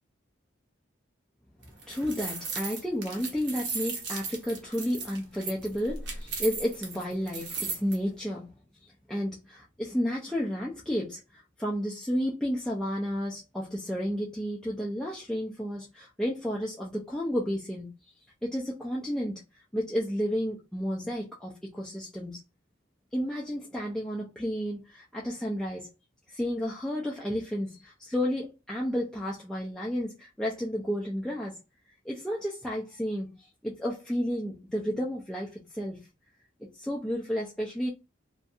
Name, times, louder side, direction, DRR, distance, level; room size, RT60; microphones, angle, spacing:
sound 1, 1.6-7.9, right 4 dB, 60° right, 0.7 m, -36 dB
voice 1, 1.9-8.5 8.8-17.9 18.4-19.4 19.7-22.4 23.1-25.9 26.3-31.6 32.0-36.0 36.6-37.9, equal, 5° left, 0.3 m, -32 dB
2.6 x 2.5 x 2.3 m
head